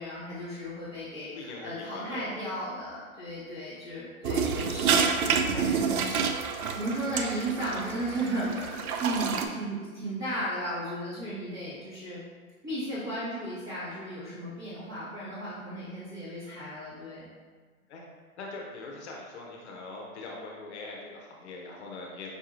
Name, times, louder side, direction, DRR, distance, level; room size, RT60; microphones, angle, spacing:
voice 1, 0.0-12.2 12.6-17.3, right 1 dB, 25° right, -13 dB, 1.3 m, -35 dB
voice 2, 1.3-2.3 17.9-18.0 18.4-22.4, left 3 dB, 50° left, -1 dB, 0.8 m, -42 dB
sound 1, 4.2-9.5, right 6 dB, 80° right, 0.5 m, -28 dB
5.3 x 2.7 x 2.5 m, 1.5 s
hypercardioid pair, 140°, 43 cm